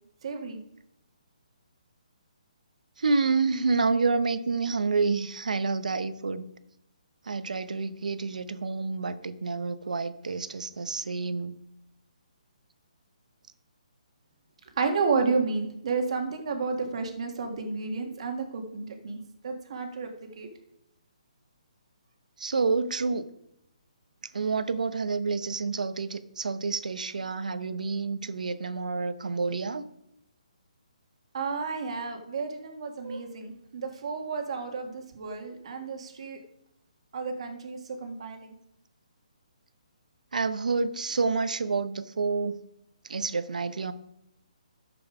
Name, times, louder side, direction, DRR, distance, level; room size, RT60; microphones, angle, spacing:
voice 1, 0.2-0.6 14.8-19.2 19.4-20.5 31.3-36.4 37.1-38.5, right 4 dB, 50° right, 4 dB, 1.6 m, -31 dB
voice 2, 3.0-6.4 7.2-11.6 22.4-23.2 24.3-29.8 40.3-42.6 43.0-43.9, right 4 dB, 85° right, 12 dB, 0.9 m, -28 dB
10.5 x 7.0 x 4.9 m, 0.82 s
hypercardioid pair, 165°, 4 cm